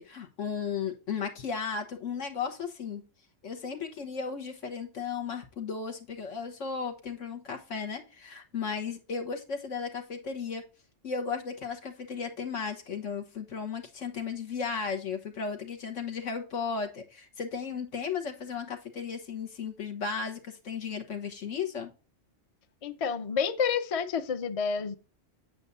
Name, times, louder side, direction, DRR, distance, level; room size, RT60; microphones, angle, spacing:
voice 1, 0.0-3.1 3.4-10.6 11.0-21.9, left 6 dB, 80° left, 1.6 m, -35 dB
voice 2, 22.8-25.0, left 6 dB, 35° left, 0.6 m, -29 dB
8.2 x 7.9 x 2.6 m
omnidirectional pair, 1.3 m